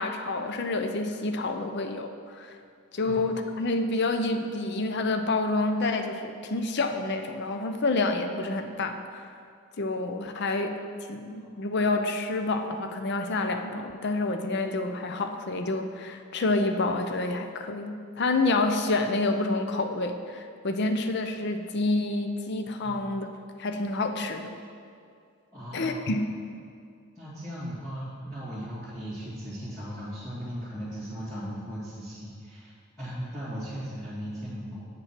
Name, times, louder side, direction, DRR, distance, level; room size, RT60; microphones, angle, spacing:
voice 1, 0.0-2.5 2.9-9.3 9.8-10.8 11.1-23.3 23.6-24.6 25.7-26.3, left 2 dB, 50° left, 6 dB, 0.5 m, -28 dB
voice 2, 25.5-26.0 27.1-32.7 33.0-34.9, equal, 15° left, -15 dB, 2.4 m, -37 dB
8.6 x 5.4 x 5.9 m, 2.3 s
head